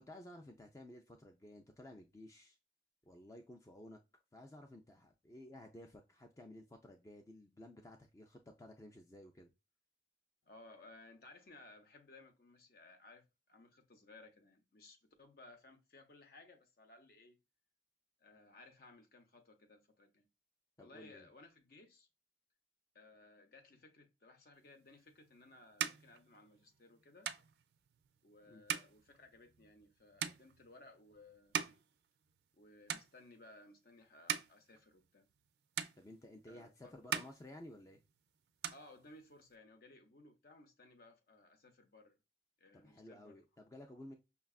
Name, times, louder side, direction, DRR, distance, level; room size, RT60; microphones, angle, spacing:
voice 1, 0.0-2.6 3.1-4.0 4.3-9.5 20.8-21.3 28.5-28.6 36.0-38.0 42.8-44.1, left 1 dB, 15° left, 0.3 m, -54 dB
voice 2, 10.4-17.4 18.2-20.3 20.8-22.1 22.9-27.3 28.2-31.7 32.5-35.3 36.5-36.9 38.7-42.2 42.6-43.4, left 2 dB, 55° left, 0.7 m, -60 dB
sound 1, 24.9-32.6 32.9-33.6 34.0-35.5 35.8-36.6 36.9-38.2 38.4-39.5, right 9 dB, 60° right, 0.3 m, -43 dB
5.6 x 2.3 x 2.3 m
head